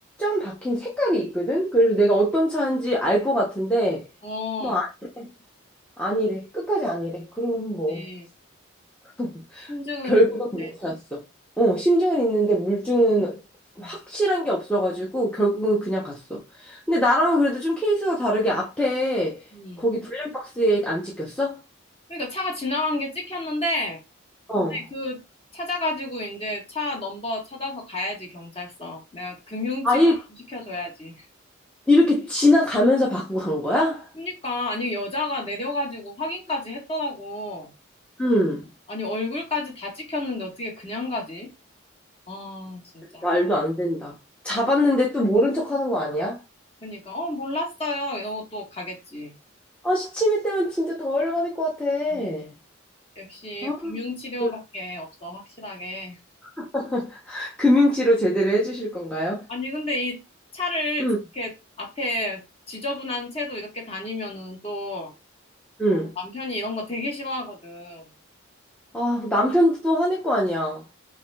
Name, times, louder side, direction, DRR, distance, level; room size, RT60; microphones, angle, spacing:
voice 1, 0.2-4.1 4.6-4.9 5.2-5.3 6.0-8.0 9.2-9.7 10.0-11.2 11.6-13.4 13.8-19.4 19.8-21.6 24.5-24.8 29.8-30.2 31.9-34.1 38.2-38.7 43.2-44.1 44.4-46.4 49.8-52.5 53.6-54.0 54.4-54.5 56.6-59.4 61.0-61.2 65.8-66.1 68.9-70.8, equal, 5° left, 0.6 m, -23 dB
voice 2, 4.2-4.8 7.9-8.3 9.7-10.2 10.6-10.7 13.8-13.9 19.5-19.8 22.1-24.0 24.5-25.2 25.5-30.0 30.5-31.2 34.1-37.7 38.9-41.5 42.3-43.3 46.8-49.3 52.1-52.3 53.2-56.2 59.5-60.2 60.5-61.1 61.3-61.5 61.8-65.1 65.9-68.1, left 2 dB, 30° left, 1.2 m, -31 dB
5.8 x 2.5 x 2.2 m
head